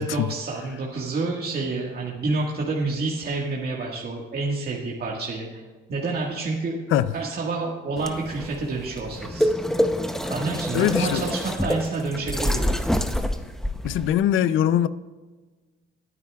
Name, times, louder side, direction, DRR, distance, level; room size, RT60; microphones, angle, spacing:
voice 1, 0.0-5.6 5.9-6.8 7.1-9.5 10.3-12.8, right 3 dB, 50° right, -2 dB, 1.8 m, -28 dB
sound 1, 8.0-14.1, equal, ahead, 0.8 m, -26 dB
voice 2, 10.7-11.2 13.8-14.9, left 11 dB, 80° left, 15 dB, 0.6 m, -21 dB
21.0 x 9.7 x 2.4 m, 1.3 s
cardioid pair, 90°, 20 cm